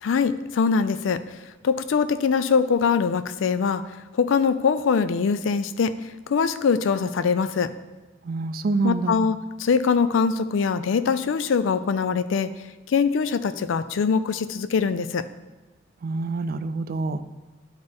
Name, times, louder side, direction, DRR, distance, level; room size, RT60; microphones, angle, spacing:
voice 1, 0.0-1.2 1.6-3.8 4.1-6.0 6.3-7.7 8.8-12.5 12.9-15.2, left 5 dB, 80° left, 13 dB, 0.4 m, -22 dB
voice 2, 8.2-9.1 16.0-17.2, right 3 dB, 50° right, 11 dB, 0.4 m, -26 dB
11.5 x 4.0 x 3.4 m, 1.1 s
head